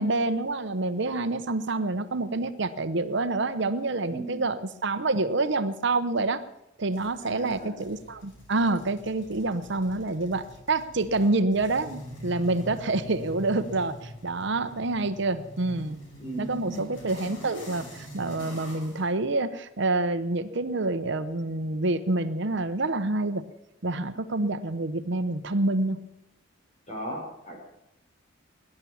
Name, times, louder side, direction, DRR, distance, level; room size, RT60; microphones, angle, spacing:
voice 1, 0.0-6.4 6.8-16.0 16.4-23.4 23.8-26.0, right 2 dB, 60° right, 11 dB, 0.9 m, -27 dB
voice 2, 4.1-4.5 7.2-7.8 16.2-16.9 26.9-27.6, right 1 dB, 35° left, 1 dB, 5.4 m, -37 dB
sound 1, 6.9-19.0, equal, 70° left, 5.2 m, -44 dB
18.5 x 11.0 x 7.1 m, 0.84 s
head